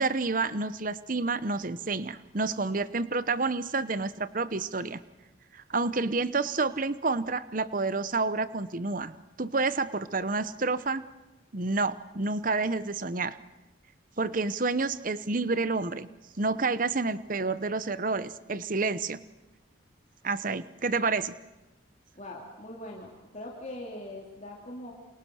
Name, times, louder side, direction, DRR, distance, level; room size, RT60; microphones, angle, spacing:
voice 1, 0.0-5.0 5.5-11.1 11.5-13.4 14.2-16.1 16.4-19.2 20.2-21.4, right 3 dB, 45° right, 14 dB, 0.9 m, -29 dB
voice 2, 22.2-24.9, left 1 dB, 35° left, -2 dB, 3.5 m, -41 dB
28.5 x 27.0 x 6.4 m, 1.1 s
head